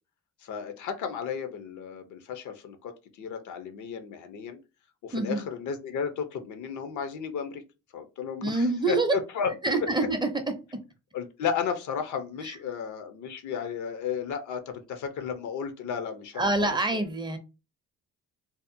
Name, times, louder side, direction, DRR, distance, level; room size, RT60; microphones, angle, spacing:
voice 1, 0.4-2.9 3.2-4.6 5.0-7.6 7.9-9.5 9.8-9.9 11.1-17.0, left 7 dB, 80° left, 0.6 m, -33 dB
voice 2, 5.1-5.4 8.4-9.1 9.6-10.3 10.7-10.8 12.4-12.5 16.4-17.4, right 2 dB, 15° right, 0.4 m, -26 dB
2.7 x 2.1 x 2.5 m
cardioid pair, 90°, 30 cm